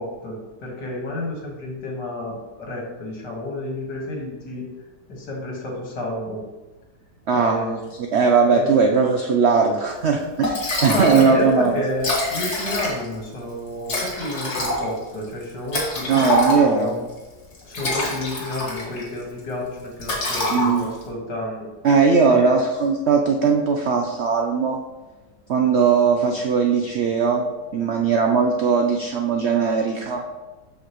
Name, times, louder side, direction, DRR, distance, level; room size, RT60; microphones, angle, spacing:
voice 1, 0.0-4.7 5.1-6.4 7.3-7.9 8.5-8.7 10.9-17.0 17.6-21.7 22.2-22.6, left 1 dB, 70° left, -2 dB, 2.3 m, -30 dB
voice 2, 7.3-7.8 8.1-11.8 16.1-17.0 20.5-20.9 21.8-24.8 25.5-30.2, right 5 dB, 80° right, 2 dB, 0.5 m, -19 dB
Liquid, 10.1-10.2 10.4-11.4 11.6-11.7 11.9-13.2 13.9-16.9 17.5-19.1 19.4-19.6 20.0-21.1, left 1 dB, 40° left, 1.7 m, -25 dB
7.3 x 6.4 x 3.1 m, 1.2 s
omnidirectional pair, 1.9 m